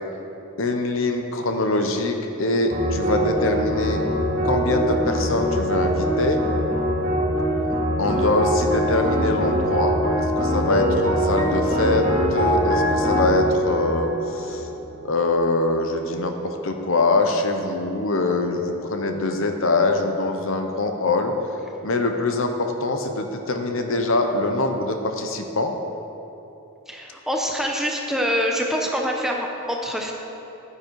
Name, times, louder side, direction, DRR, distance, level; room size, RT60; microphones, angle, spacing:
voice 1, 0.6-4.0 4.4-6.5 8.0-14.7 15.0-21.3 21.8-25.8, left 2 dB, 65° left, 5 dB, 0.9 m, -23 dB
sound 1, 2.7-15.2, equal, 40° right, 2.2 m, -23 dB
voice 2, 26.9-30.1, equal, ahead, 0 dB, 0.8 m, -25 dB
11.5 x 9.9 x 4.7 m, 3.0 s
head